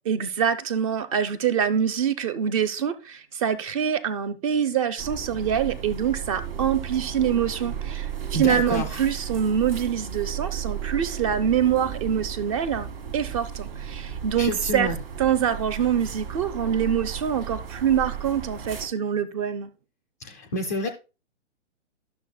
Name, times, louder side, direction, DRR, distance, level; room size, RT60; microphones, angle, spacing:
voice 1, 0.1-12.9 13.1-14.9 15.2-19.7, right 8 dB, 30° right, 0.6 m, -25 dB
sound 1, 5.0-18.9, right 8 dB, 55° right, 1.2 m, -34 dB
voice 2, 8.3-9.0 14.4-15.0 20.2-20.9, equal, 15° left, 0.3 m, -29 dB
11.5 x 6.4 x 2.2 m
figure-of-eight pair, 120°, 36 cm